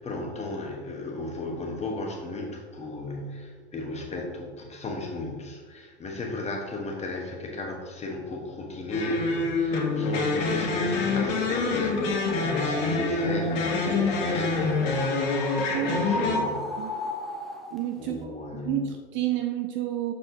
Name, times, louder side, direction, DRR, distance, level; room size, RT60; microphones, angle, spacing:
voice 1, 0.0-16.6 18.0-18.8, left 2 dB, 20° left, 1 dB, 1.2 m, -35 dB
sound 1, 8.9-16.4, left 3 dB, 50° left, 1.4 m, -26 dB
sound 2, 12.0-17.8, left 2 dB, ahead, 0.7 m, -35 dB
voice 2, 15.7-16.9 17.7-20.1, right 11 dB, 35° right, 5 dB, 0.4 m, -31 dB
6.7 x 5.6 x 2.8 m, 1.5 s
hypercardioid pair, 90°, 35 cm